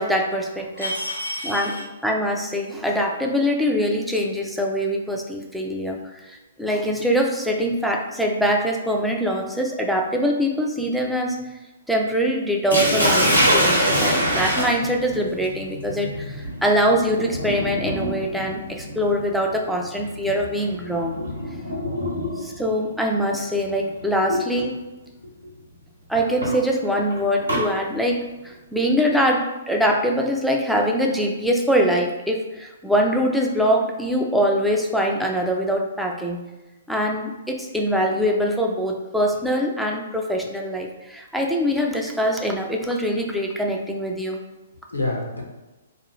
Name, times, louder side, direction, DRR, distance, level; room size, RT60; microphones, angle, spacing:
voice 1, 0.0-1.0 1.4-11.4 11.9-21.2 22.4-24.8 26.1-36.4 36.9-44.4, equal, ahead, 0 dB, 0.3 m, -23 dB
voice 2, 0.8-1.7 21.2-21.3 24.3-24.4 44.9-45.4, left 1 dB, 85° left, 0 dB, 0.6 m, -27 dB
Sink (filling or washing), 12.7-22.6 23.8-24.1 24.6-24.7 26.1-27.7, equal, 90° right, 0.9 m, -24 dB
2.4 x 2.3 x 3.0 m, 1.1 s
figure-of-eight pair, 120°, 0 cm